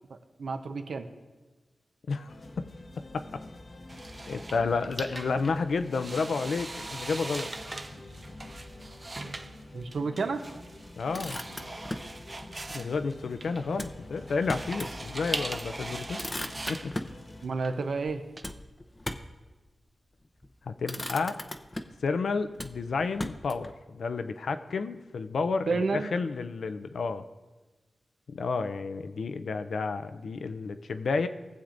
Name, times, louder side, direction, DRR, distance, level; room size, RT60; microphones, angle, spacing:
voice 1, 0.1-1.1 9.7-10.4 17.4-18.2 25.7-26.1, right 4 dB, 80° right, 6 dB, 0.7 m, -30 dB
voice 2, 2.1-2.7 3.0-3.4 4.3-7.5 11.0-11.4 12.7-16.2 16.7-16.9 20.6-21.4 22.0-27.2 28.3-31.3, left 4 dB, 80° left, 10 dB, 0.5 m, -31 dB
sound 1, 2.3-17.5, left 2 dB, 55° left, 0.9 m, -47 dB
sound 2, 3.9-18.4, right 2 dB, 35° right, 0.6 m, -40 dB
Motor vehicle (road), 10.9-12.2 13.7-15.0 15.4-15.5 15.8-17.2 18.4-19.4 20.2-20.5 20.8-22.1 22.5-23.8, left 1 dB, 25° left, 0.6 m, -38 dB
18.5 x 7.2 x 2.6 m, 1.2 s
cardioid pair, 65°, 0 cm